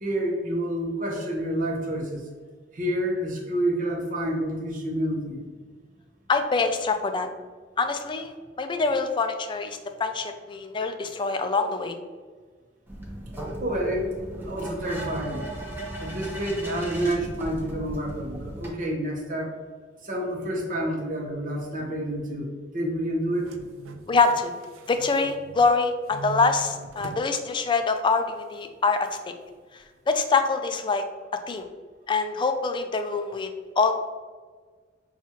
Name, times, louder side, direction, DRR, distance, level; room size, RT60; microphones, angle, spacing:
voice 1, 0.0-2.3 2.7-5.6 13.6-15.5 16.0-19.6 20.0-23.5, right 1 dB, 45° right, 0 dB, 0.8 m, -29 dB
voice 2, 6.3-7.3 7.8-8.3 8.6-12.0 24.1-24.5 24.9-29.3 29.7-31.0 31.5-31.6 32.1-33.5 33.8-33.9, left 4 dB, 25° left, 7 dB, 0.3 m, -25 dB
sound 1, 12.9-18.7, right 1 dB, 10° right, 0.8 m, -36 dB
sound 2, 23.3-25.8 26.1-27.3 27.7-27.8 29.0-29.1, right 4 dB, 85° right, 0.4 m, -41 dB
5.9 x 2.3 x 2.9 m, 1.5 s
head